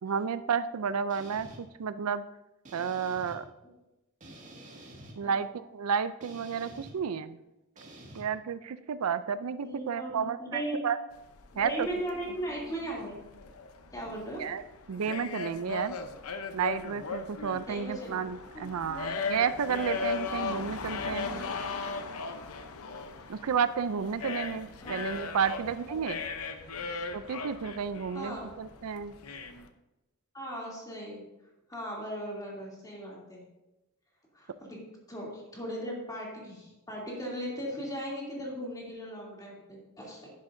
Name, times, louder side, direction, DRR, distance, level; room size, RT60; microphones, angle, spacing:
voice 1, 0.0-2.2 2.7-3.4 5.2-7.4 8.1-11.0 11.6-11.9 14.4-14.6 14.9-16.0 16.5-21.4 23.3-26.2 27.1-29.1, right 6 dB, 85° right, 13 dB, 0.5 m, -31 dB
sound 1, 1.1-1.6 2.6-3.4 4.2-5.1 6.2-6.9 7.8-8.2, right 1 dB, 35° right, 2.0 m, -48 dB
voice 2, 9.6-10.8 11.5-13.2 13.9-14.5 17.6-18.2 18.5-19.1 24.8-25.4 25.8-26.0 26.8-26.9 28.1-28.5 30.3-31.2 31.7-33.4 34.3-34.8 35.1-40.3, equal, 15° left, -4 dB, 2.9 m, -38 dB
sound 2, 11.1-29.7, left 4 dB, 90° left, 0.8 m, -38 dB
10.5 x 10.5 x 2.7 m, 0.96 s
head